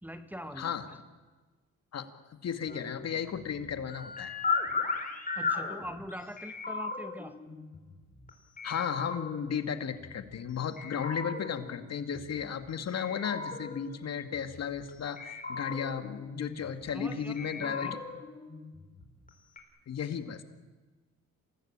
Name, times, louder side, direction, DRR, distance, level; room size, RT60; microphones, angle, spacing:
voice 1, 0.0-1.0 5.4-7.3 16.9-18.0, equal, 5° right, 9 dB, 2.0 m, -43 dB
voice 2, 0.6-0.9 1.9-4.4 8.6-17.9 19.9-20.4, left 7 dB, 55° left, 8 dB, 2.2 m, -34 dB
sound 1, 2.7-8.3 8.6-10.4 10.8-12.7 13.0-14.9 15.2-17.0 17.4-19.3 19.6-19.7, left 4 dB, 25° left, 4.6 m, -37 dB
27.5 x 19.0 x 8.8 m, 1.3 s
cardioid pair, 90°, 30 cm